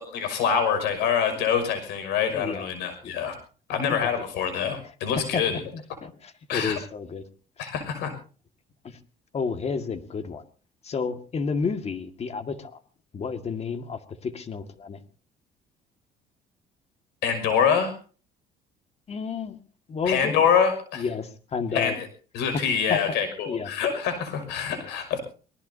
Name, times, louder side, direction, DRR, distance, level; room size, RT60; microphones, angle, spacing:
voice 1, 0.1-3.3 3.7-5.6 6.5-6.8 7.6-8.1 17.2-17.9 20.1-21.0 21.7-22.1 22.3-25.2, left 7 dB, 90° left, 8 dB, 6.0 m, -25 dB
voice 2, 2.3-2.7 3.0-3.2 3.9-4.1 5.2-7.3 7.6-7.7 8.8-9.0 9.3-10.4 10.8-12.8 13.1-15.0 19.1-19.6 19.9-20.4 20.9-22.0 22.9-23.2 23.5-23.7, left 5 dB, 40° left, 8 dB, 2.0 m, -31 dB
26.0 x 19.5 x 2.8 m, 0.39 s
cardioid pair, 110°, 17 cm